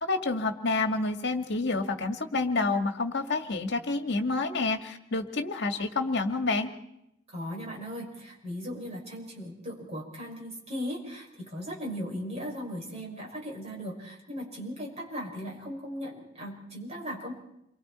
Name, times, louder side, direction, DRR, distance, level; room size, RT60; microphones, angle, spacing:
voice 1, 0.0-6.7, left 3 dB, 55° left, 6 dB, 2.0 m, -28 dB
voice 2, 7.3-17.3, equal, 30° right, -1 dB, 6.5 m, -38 dB
29.0 x 24.0 x 4.4 m, 0.80 s
head